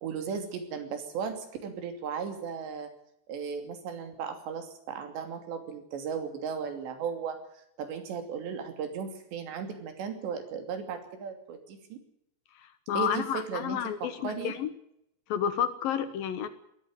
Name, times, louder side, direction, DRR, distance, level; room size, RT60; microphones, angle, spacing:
voice 1, 0.0-2.9 3.3-7.4 7.8-12.0 12.9-14.5, right 6 dB, 85° right, 7 dB, 5.1 m, -36 dB
voice 2, 12.6-14.7 15.3-16.5, left 9 dB, 65° left, 12 dB, 2.7 m, -30 dB
19.0 x 14.5 x 9.6 m, 0.76 s
omnidirectional pair, 4.9 m